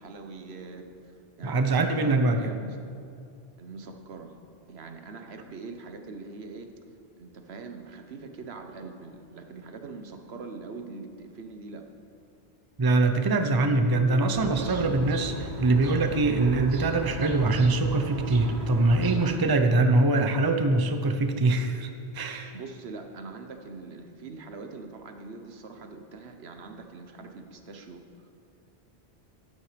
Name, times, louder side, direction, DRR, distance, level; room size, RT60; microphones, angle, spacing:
voice 1, 0.0-2.9 3.6-4.3 4.7-6.7 7.2-11.8 14.5-14.8 22.5-28.3, right 4 dB, 80° right, 5 dB, 1.2 m, -42 dB
voice 2, 1.4-2.5 12.8-22.5, right 2 dB, 25° right, 6 dB, 0.6 m, -23 dB
sound 1, 13.9-22.7, left 3 dB, 45° left, 2.9 m, -45 dB
sound 2, 14.3-19.4, right 3 dB, 50° right, 1.0 m, -37 dB
13.0 x 9.8 x 5.0 m, 2.4 s
omnidirectional pair, 1.1 m